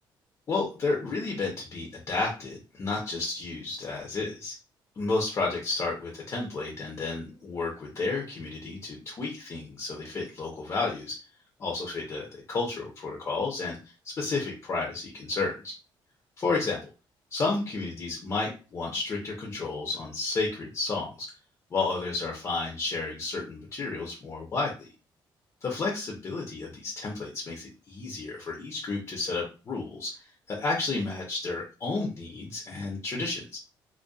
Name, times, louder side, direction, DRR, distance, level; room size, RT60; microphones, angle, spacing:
voice 1, 0.5-4.5 5.0-11.2 11.6-13.8 14.2-15.7 16.4-16.8 17.3-21.3 21.7-24.9 25.6-30.1 30.5-33.6, left 3 dB, 35° left, -1 dB, 0.6 m, -31 dB
2.5 x 2.2 x 2.3 m, 0.32 s
cardioid pair, 140°, 9 cm